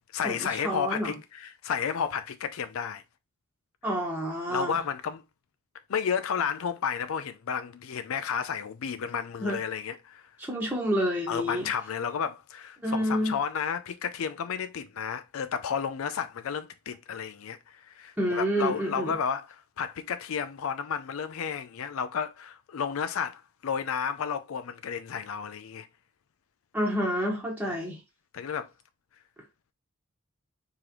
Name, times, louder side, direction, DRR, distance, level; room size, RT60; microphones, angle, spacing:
voice 1, 0.1-3.0 4.5-5.2 5.9-10.2 11.3-25.9 27.6-27.7 28.3-28.7, left 7 dB, 75° left, 0.4 m, -32 dB
voice 2, 0.6-1.1 3.8-4.8 9.4-9.6 10.4-11.7 12.8-13.3 18.2-19.1 26.7-28.0, equal, 10° right, 1.2 m, -28 dB
4.8 x 3.7 x 3.0 m
head